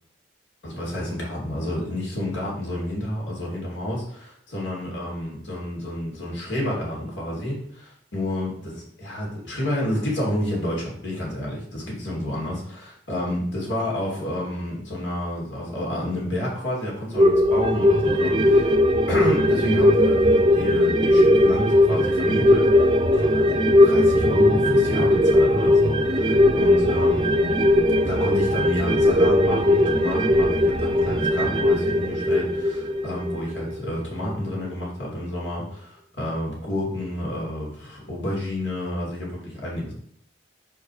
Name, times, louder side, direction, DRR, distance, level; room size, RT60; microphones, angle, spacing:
voice 1, 0.6-18.7 19.1-22.9 23.2-27.3 28.0-39.9, left 1 dB, 85° left, -3 dB, 2.7 m, -29 dB
sound 1, 17.2-34.0 34.3-34.4, left 1 dB, 25° right, 0.5 m, -19 dB
5.1 x 4.6 x 4.9 m, 0.64 s
head